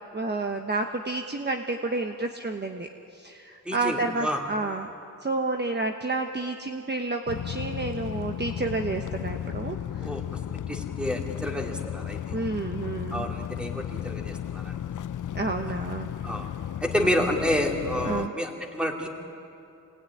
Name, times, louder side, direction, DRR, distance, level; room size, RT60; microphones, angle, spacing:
voice 1, 0.1-2.9 3.1-4.9 5.2-9.8 12.3-13.2 15.3-16.1 18.0-18.3, right 3 dB, 30° right, 4 dB, 1.2 m, -30 dB
voice 2, 3.6-4.5 10.0-10.4 10.7-12.4 13.1-14.8 16.2-16.5 16.8-19.1, equal, 5° right, 1 dB, 2.9 m, -29 dB
sound 1, 7.3-18.3, left 10 dB, 60° left, 0.5 m, -34 dB
25.5 x 19.5 x 9.9 m, 2.7 s
wide cardioid pair, 105°, 35 cm